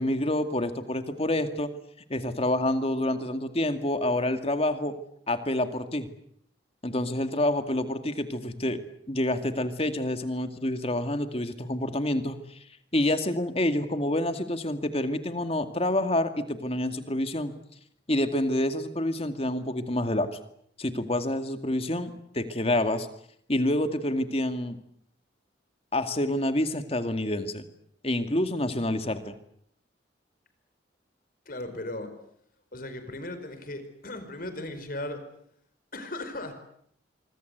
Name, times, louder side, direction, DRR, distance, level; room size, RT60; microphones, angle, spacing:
voice 1, 0.0-1.7 2.1-5.0 5.3-6.1 6.8-8.8 9.1-12.6 12.9-17.5 18.1-20.3 20.8-23.1 23.5-24.8 25.9-27.6 28.0-29.3, left 1 dB, 35° left, 9 dB, 2.3 m, -28 dB
voice 2, 31.5-32.1 32.7-35.2 35.9-36.5, left 1 dB, 50° left, 9 dB, 4.7 m, -37 dB
25.5 x 24.0 x 8.2 m, 0.69 s
head